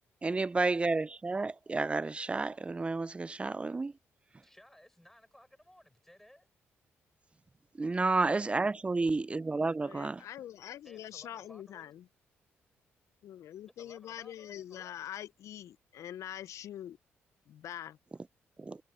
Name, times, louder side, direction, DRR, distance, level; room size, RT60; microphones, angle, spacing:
voice 1, 0.2-3.9 7.8-10.2 18.6-18.8, right 3 dB, 20° right, 0.4 m, -31 dB
voice 2, 4.4-6.5 10.8-11.9 13.7-15.0, left 1 dB, 5° left, 6.4 m, -58 dB
voice 3, 9.8-12.0 13.2-17.0 17.5-18.0, left 11 dB, 70° left, 0.6 m, -44 dB
supercardioid pair, 70°, 5 cm